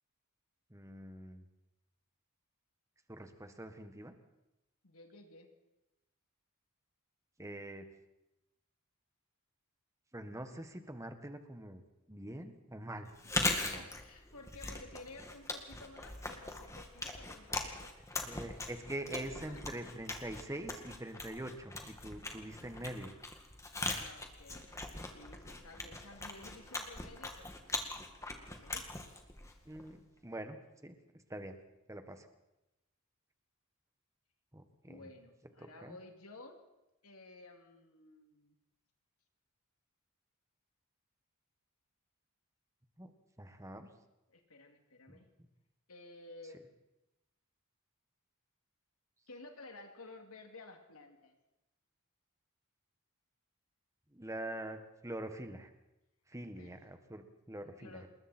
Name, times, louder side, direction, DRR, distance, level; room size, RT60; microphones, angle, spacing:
voice 1, 0.7-1.4 3.1-4.1 7.4-7.8 10.1-11.8 12.1-13.1 13.6-13.8 18.1-23.1 29.6-30.6 30.8-31.0 31.3-31.6 31.9-32.3 34.5-35.1 35.6-36.0 43.0-43.1 43.4-43.9 45.1-45.2 54.1-55.7 56.3-58.1, right 1 dB, 15° right, 7 dB, 1.6 m, -44 dB
voice 2, 4.8-5.5 13.5-17.9 19.5-19.6 23.7-27.5 28.5-29.1 34.8-36.6 37.0-38.5 44.3-45.3 45.9-46.6 49.3-51.3 56.6-56.8 57.8-58.1, left 2 dB, 75° left, 3 dB, 3.0 m, -54 dB
Chewing mastication, 13.1-30.0, left 2 dB, 15° left, 2.0 m, -41 dB
27.5 x 21.0 x 4.5 m, 0.95 s
head